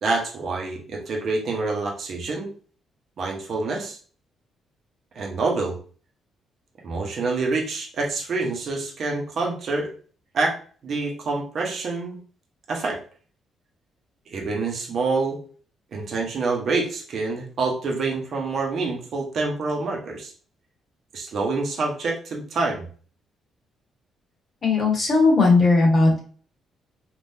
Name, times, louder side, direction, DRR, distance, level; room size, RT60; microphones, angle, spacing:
voice 1, 0.0-2.5 3.2-4.0 5.2-5.8 6.8-9.9 10.3-10.6 10.8-12.2 12.7-13.0 14.3-15.4 15.9-20.3 21.1-22.9, right 3 dB, 60° right, 0 dB, 0.9 m, -26 dB
voice 2, 24.6-26.2, left 3 dB, 40° left, -2 dB, 1.4 m, -17 dB
3.6 x 2.5 x 2.6 m, 0.42 s
cardioid pair, 90°, 0 cm